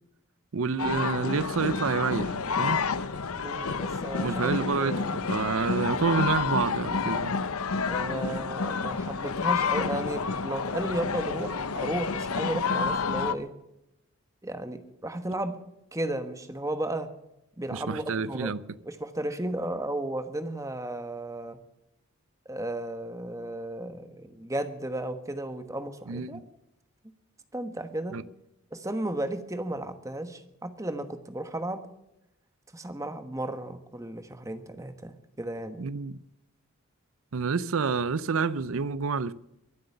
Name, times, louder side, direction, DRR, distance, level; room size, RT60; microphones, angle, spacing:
voice 1, 0.5-2.8 4.2-7.4 17.7-18.6 26.1-26.4 28.1-28.2 35.8-36.2 37.3-39.3, right 5 dB, 70° right, 0.5 m, -28 dB
sound 1, 0.8-13.3, left 5 dB, 85° left, 0.8 m, -29 dB
voice 2, 3.4-5.2 7.9-13.5 14.4-15.6 15.9-17.1 17.6-18.6 18.8-21.6 22.4-26.4 27.5-28.2 28.7-31.8 32.7-35.8, right 1 dB, 15° right, 1.2 m, -34 dB
23.5 x 7.9 x 6.8 m
head